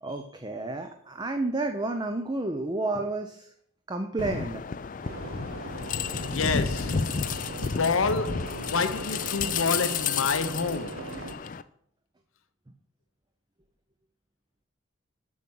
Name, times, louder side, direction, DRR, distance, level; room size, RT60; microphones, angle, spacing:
voice 1, 0.0-3.5 3.9-4.6, right 2 dB, 20° right, 0.6 m, -30 dB
sound 1, 4.2-11.6, left 6 dB, 40° left, 0.4 m, -31 dB
sound 2, 5.0-11.3, right 3 dB, 80° right, 0.9 m, -40 dB
voice 2, 6.1-7.1 7.5-11.2, left 4 dB, 75° left, 0.7 m, -28 dB
7.3 x 5.8 x 7.7 m
head